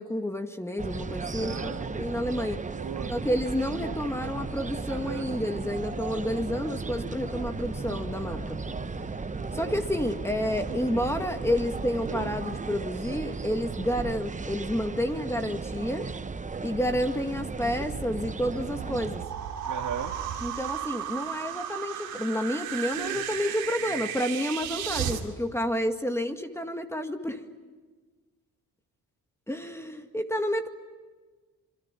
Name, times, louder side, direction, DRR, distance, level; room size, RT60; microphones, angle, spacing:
voice 1, 0.0-2.6 3.1-8.6 9.5-16.1 16.6-19.2 20.4-27.4 29.5-30.7, equal, 10° left, 5 dB, 2.0 m, -30 dB
sound 1, 0.8-19.3, right 4 dB, 20° right, 0.8 m, -35 dB
voice 2, 1.4-2.1 2.7-3.2 4.9-5.3 12.1-12.4 19.7-20.2 23.0-23.2 23.8-24.0, right 7 dB, 60° right, 4 dB, 2.8 m, -37 dB
sound 2, 3.5-12.2, left 2 dB, 45° left, 5.7 m, -45 dB
sound 3, 17.8-25.2, right 10 dB, 90° right, 2.6 m, -34 dB
26.5 x 23.0 x 9.2 m, 1.4 s
cardioid pair, 80°, 34 cm